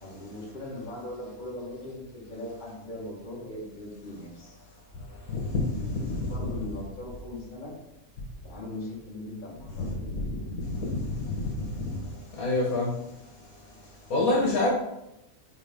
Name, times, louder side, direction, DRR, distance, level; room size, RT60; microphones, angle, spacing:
voice 1, 0.0-4.6 5.7-7.7 8.4-10.3 14.5-14.7, left 1 dB, 35° left, -4 dB, 1.9 m, -40 dB
voice 2, 12.4-12.9 14.1-14.7, left 2 dB, 75° left, -2 dB, 1.7 m, -25 dB
6.7 x 4.4 x 3.7 m, 0.88 s
omnidirectional pair, 1.5 m